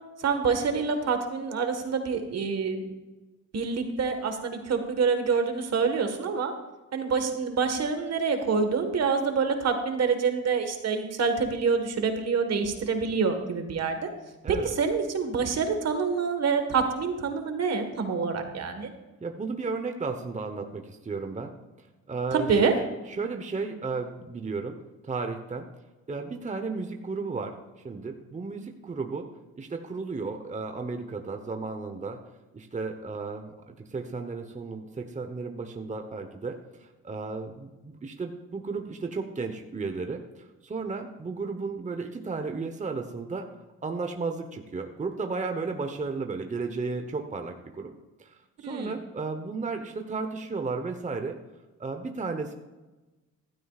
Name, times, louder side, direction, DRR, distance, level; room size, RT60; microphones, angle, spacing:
voice 1, 0.2-2.8 3.5-6.5 6.9-14.1 14.5-18.9 22.3-22.7 48.6-48.9, right 5 dB, 55° right, 6 dB, 1.6 m, -26 dB
voice 2, 14.4-14.8 19.2-21.5 22.1-24.8 25.0-25.7 26.1-27.6 27.8-29.3 29.6-32.2 32.5-43.5 43.8-47.9 48.2-51.4 51.8-52.5, right 4 dB, 25° right, 5 dB, 1.0 m, -34 dB
15.5 x 12.5 x 2.5 m, 1.1 s
cardioid pair, 90°, 30 cm